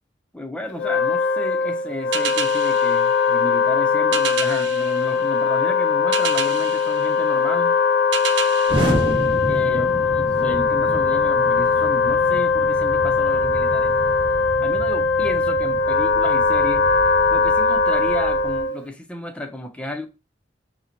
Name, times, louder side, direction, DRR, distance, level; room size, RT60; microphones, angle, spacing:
voice 1, 0.3-7.8 9.5-13.9 14.6-16.9 17.3-20.1, left 1 dB, 5° left, 0.4 m, -33 dB
Wind instrument woodwind instrument, 0.7-18.8, left 4 dB, 85° left, 0.4 m, -20 dB
sound 1, 2.1-10.0, right 7 dB, 80° right, 0.4 m, -32 dB
Explosion, 8.7-18.6, equal, 30° right, 1.0 m, -30 dB
2.9 x 2.1 x 3.8 m
head